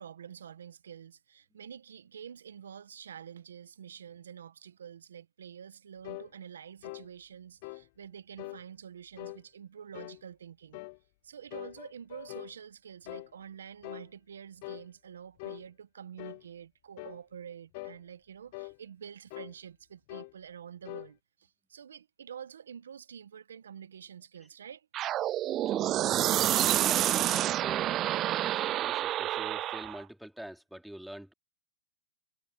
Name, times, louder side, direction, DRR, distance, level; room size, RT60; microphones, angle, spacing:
voice 1, 0.0-10.8 11.2-24.9, right 8 dB, 80° right, 1.3 m, -47 dB
sound 1, 6.0-6.3 6.8-7.1 7.6-7.9 8.4-8.6 9.2-9.4 9.9-10.2 10.7-11.0 11.5-12.5 13.1-13.3 13.8-14.1 14.6-14.9 15.4-15.6 16.2-16.4 17.0-17.2 17.7-18.0 18.5-18.8 19.3-19.5 20.1-20.3 20.9-21.1, left 26 dB, 50° left, 0.5 m, -43 dB
sound 2, 24.9-30.0, right 13 dB, 30° right, 0.4 m, -28 dB
voice 2, 25.7-26.0 26.6-27.9 28.4-31.3, equal, ahead, 3.2 m, -45 dB
hypercardioid pair, 125°, 0 cm